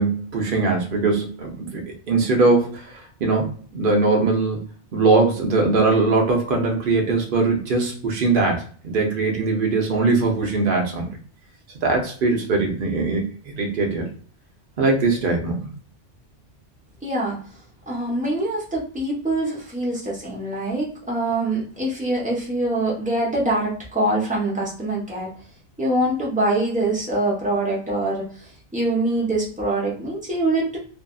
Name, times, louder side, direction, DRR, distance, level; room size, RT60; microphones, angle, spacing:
voice 1, 0.0-4.6 4.9-11.1 11.8-13.3 13.5-14.1 14.8-15.7, right 3 dB, 55° right, 1 dB, 0.8 m, -21 dB
voice 2, 17.0-17.4 17.9-25.3 25.8-30.8, right 1 dB, 10° right, -5 dB, 0.8 m, -24 dB
2.6 x 2.4 x 2.3 m, 0.43 s
omnidirectional pair, 1.2 m